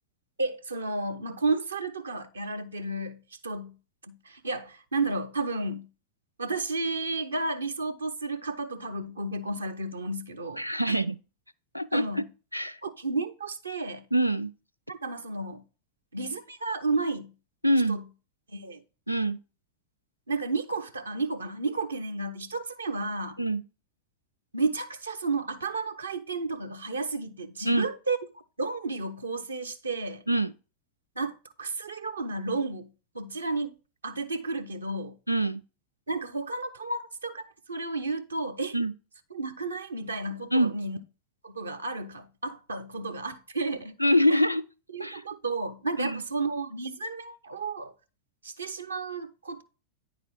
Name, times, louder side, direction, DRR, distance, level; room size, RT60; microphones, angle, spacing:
voice 1, 0.4-3.7 4.0-5.9 6.4-11.0 11.9-12.3 12.8-14.0 14.9-15.6 16.1-17.3 17.9-18.0 18.5-18.8 20.3-23.4 24.5-28.2 28.6-30.2 31.2-32.9 33.1-33.7 34.0-35.2 36.1-38.7 39.3-41.0 41.4-43.9 44.3-44.4 44.9-47.9 48.4-49.6, right 3 dB, 75° right, 0.8 m, -32 dB
voice 2, 10.6-11.2 11.7-12.3 12.5-12.8 14.1-14.5 17.6-18.0 19.1-19.4 23.4-23.6 27.7-27.9 30.3-30.5 35.3-35.6 38.7-38.9 40.5-40.7 44.0-44.6 45.0-45.2 46.0-46.2, equal, 90° left, 0.4 m, -24 dB
9.7 x 3.9 x 4.6 m
figure-of-eight pair, 90°, 0 cm